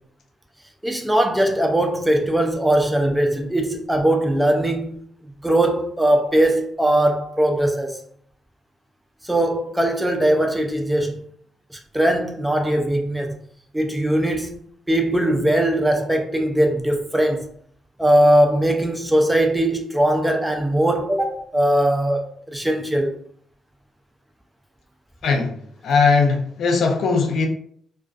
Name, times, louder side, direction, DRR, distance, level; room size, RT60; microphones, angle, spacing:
voice 1, 0.8-5.0 5.4-8.0 9.2-11.2 11.9-13.3 13.7-14.6 14.9-17.5 18.0-23.2, right 1 dB, 5° right, 0.4 m, -20 dB
voice 2, 25.2-25.6 25.8-27.5, left 4 dB, 65° left, 0.4 m, -19 dB
2.3 x 2.3 x 2.3 m
cardioid pair, 90°, 0 cm